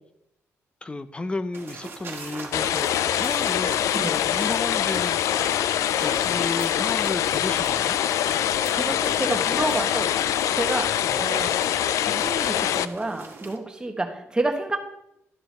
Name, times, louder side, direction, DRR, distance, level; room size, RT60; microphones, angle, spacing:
voice 1, 0.8-5.2 6.0-8.0 11.0-11.3, left 2 dB, 20° left, 13 dB, 0.6 m, -33 dB
sound 1, 1.5-13.6, right 4 dB, 45° right, 1.6 m, -42 dB
sound 2, 2.5-12.8, left 11 dB, 80° left, 0.4 m, -24 dB
voice 2, 8.3-11.6 12.1-14.8, right 2 dB, 15° right, 4 dB, 1.4 m, -30 dB
12.0 x 5.6 x 4.3 m, 0.81 s
cardioid pair, 85°, 5 cm